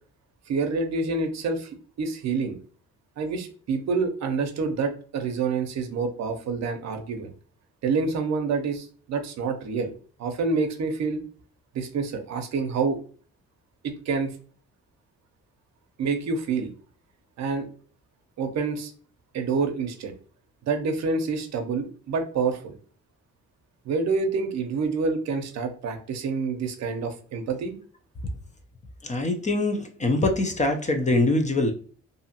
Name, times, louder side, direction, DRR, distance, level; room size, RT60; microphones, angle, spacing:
voice 1, 0.5-2.6 3.2-7.3 7.8-9.9 10.2-11.2 11.7-13.0 13.8-14.3 16.0-16.7 17.4-17.7 18.4-18.9 19.3-20.1 20.6-22.8 23.8-27.8, right 4 dB, 65° right, 6 dB, 0.7 m, -27 dB
voice 2, 29.0-31.7, left 2 dB, 25° left, 5 dB, 0.5 m, -23 dB
2.6 x 2.4 x 2.7 m, 0.41 s
cardioid pair, 90°, 30 cm